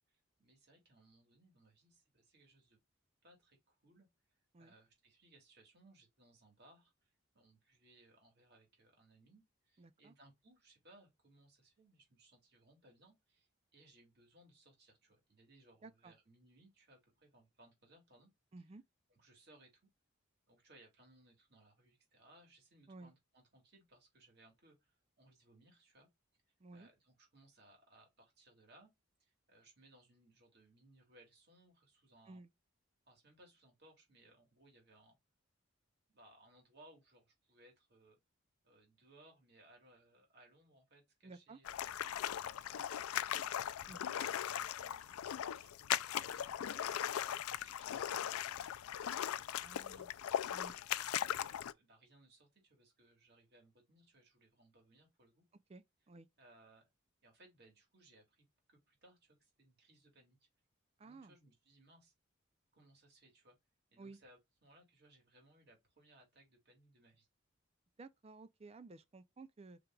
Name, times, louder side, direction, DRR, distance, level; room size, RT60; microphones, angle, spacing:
voice 1, 0.0-2.8 3.2-4.1 4.6-18.3 19.1-19.9 20.5-26.1 26.7-28.9 29.2-32.4 33.1-35.2 36.1-38.2 38.6-41.8 42.4-43.4 44.1-44.2 44.5-45.2 45.6-50.1 50.6-55.4 56.4-56.9 57.2-60.4 61.0-62.1 62.7-63.6 63.9-67.3, right 1 dB, 50° right, 2.2 m, -66 dB
voice 2, 9.8-10.1 15.8-16.1 18.5-18.8 22.9-23.1 26.6-26.9 32.3-32.5 41.2-41.6 43.9-44.1 49.6-50.1 50.5-50.7 55.7-56.3 61.0-61.3 64.0-64.2 68.0-69.8, right 3 dB, 30° right, 0.3 m, -54 dB
sound 1, 41.7-51.7, left 10 dB, 90° left, 0.4 m, -39 dB
5.0 x 4.5 x 2.3 m
head